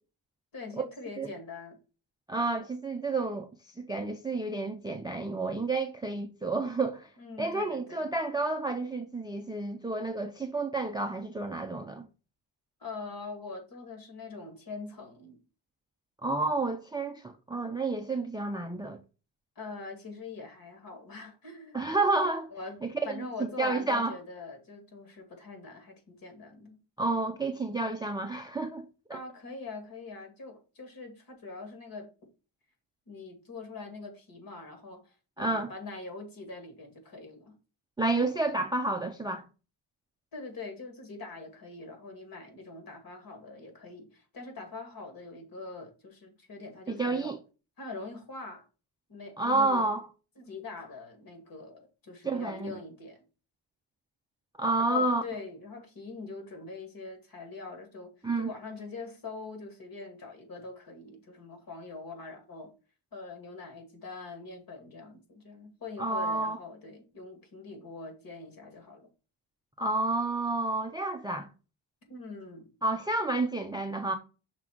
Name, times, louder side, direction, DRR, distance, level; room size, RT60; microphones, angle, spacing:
voice 1, 0.5-1.8 7.2-8.1 12.8-15.4 19.6-21.8 22.5-22.8 23.0-26.8 29.1-32.1 33.1-37.5 40.3-47.4 47.8-48.7 49.1-49.9 50.4-53.2 54.8-62.7 63.1-69.1 72.1-72.7, left 3 dB, 50° left, 2.2 m, -43 dB
voice 2, 2.3-3.5 3.8-7.1 7.4-12.1 16.2-19.0 21.7-22.5 22.8-23.3 23.6-24.1 27.0-29.2 35.4-35.7 38.0-39.4 46.9-47.4 49.4-50.0 52.2-52.7 54.6-55.2 58.2-58.5 66.0-66.6 69.8-71.5 72.8-74.2, right 2 dB, 10° right, 0.4 m, -30 dB
6.0 x 3.7 x 5.8 m
wide cardioid pair, 180°, 45 cm